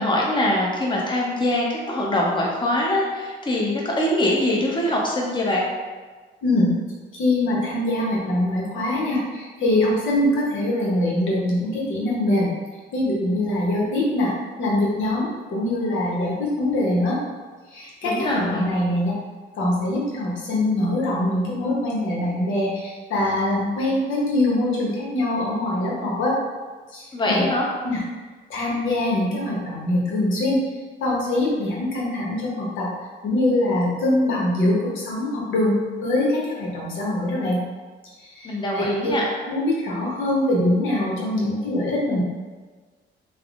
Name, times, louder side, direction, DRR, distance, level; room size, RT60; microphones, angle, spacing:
voice 1, 0.0-5.6 18.0-18.7 27.1-27.7 38.4-39.3, left 1 dB, 25° left, -2 dB, 0.7 m, -23 dB
voice 2, 6.4-6.7 7.1-12.5 12.9-14.3 14.6-17.2 17.7-19.1 19.6-26.4 26.9-27.5 27.8-28.0 28.5-30.6 31.0-32.9 33.2-37.6 38.4-39.1 39.5-42.2, left 1 dB, 80° left, -4 dB, 0.8 m, -23 dB
3.4 x 2.0 x 2.4 m, 1.4 s
cardioid pair, 90°, 20 cm